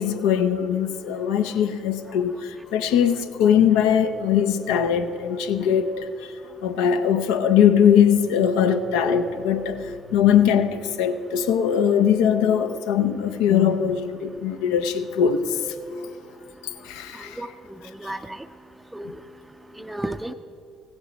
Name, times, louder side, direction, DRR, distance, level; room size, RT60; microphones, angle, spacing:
voice 1, 0.0-6.1 6.6-15.6 16.8-17.4, left 8 dB, 80° left, 0.6 m, -21 dB
voice 2, 17.2-17.5 18.0-18.4 18.9-19.1 19.8-20.3, right 1 dB, 10° right, 0.4 m, -33 dB
16.0 x 8.1 x 5.1 m
hypercardioid pair, 55°, 0 cm